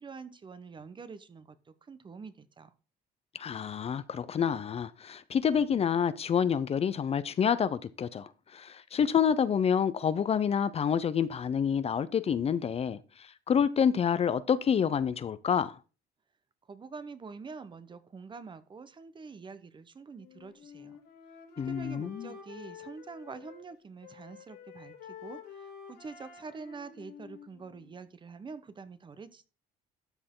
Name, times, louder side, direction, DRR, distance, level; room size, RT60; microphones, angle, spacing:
voice 1, 0.0-2.7 16.7-21.0 21.6-29.5, right 4 dB, 30° right, 0.9 m, -46 dB
voice 2, 3.4-15.7 21.6-22.3, left 7 dB, 35° left, 0.6 m, -28 dB
Wind instrument woodwind instrument, 20.1-23.7 24.0-28.0, left 7 dB, 75° left, 2.8 m, -50 dB
12.5 x 6.7 x 3.8 m
cardioid pair, 110°, 17 cm